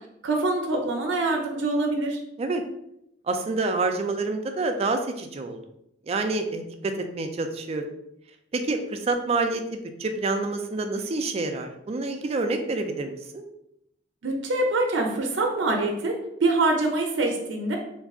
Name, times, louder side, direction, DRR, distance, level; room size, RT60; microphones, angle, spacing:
voice 1, 0.2-2.2 14.2-17.8, right 2 dB, 85° right, 2 dB, 0.5 m, -25 dB
voice 2, 3.3-5.6 6.0-7.9 8.5-13.4, right 3 dB, 35° right, 6 dB, 0.3 m, -28 dB
2.5 x 2.3 x 3.6 m, 0.79 s
head